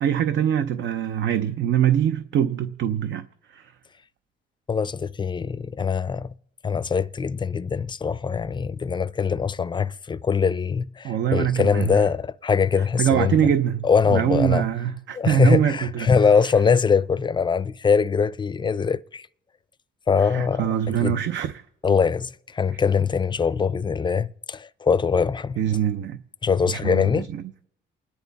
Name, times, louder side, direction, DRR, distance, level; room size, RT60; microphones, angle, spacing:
voice 1, 0.0-3.7 11.0-12.1 13.0-16.1 20.2-21.6 25.6-26.2 26.7-27.4, right 10 dB, 70° right, 0.7 m, -23 dB
voice 2, 4.7-6.3 6.6-13.4 13.8-14.7 15.2-19.3 20.1-20.7 21.0-21.2 21.8-25.6 26.4-27.3, left 6 dB, 25° left, 0.5 m, -22 dB
28.5 x 10.5 x 4.1 m
cardioid pair, 90°, 20 cm